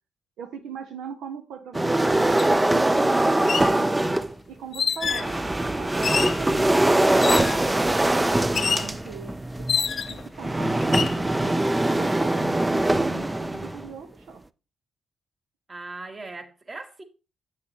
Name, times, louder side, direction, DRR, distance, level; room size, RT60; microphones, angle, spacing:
voice 1, 0.4-3.9 4.5-6.8 7.3-11.6 12.0-14.4, right 6 dB, 85° right, 0.7 m, -41 dB
sound 1, 1.7-4.3 5.0-13.9, right 1 dB, 15° right, 0.4 m, -22 dB
sound 2, 2.4-2.5 3.3-3.7 4.7-5.3 6.0-6.4 7.2-7.6 8.6-8.9 9.7-10.3 10.8-11.2, left 6 dB, 55° left, 0.5 m, -26 dB
voice 2, 5.0-5.5 7.6-8.2 15.7-17.0, right 3 dB, 35° right, 1.5 m, -39 dB
8.3 x 6.6 x 2.9 m
cardioid pair, 70°, 0 cm